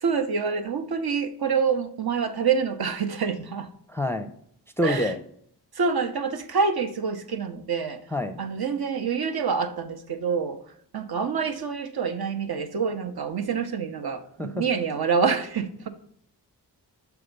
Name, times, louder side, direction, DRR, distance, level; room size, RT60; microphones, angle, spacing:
voice 1, 0.0-3.7 4.8-5.1 5.7-8.0 8.4-10.6 10.9-15.9, right 5 dB, 60° right, 7 dB, 0.8 m, -26 dB
voice 2, 3.9-4.3 4.8-5.2 8.1-8.4 14.4-14.6, left 1 dB, 5° left, 7 dB, 0.5 m, -26 dB
6.8 x 3.5 x 5.2 m, 0.65 s
cardioid pair, 75°, 41 cm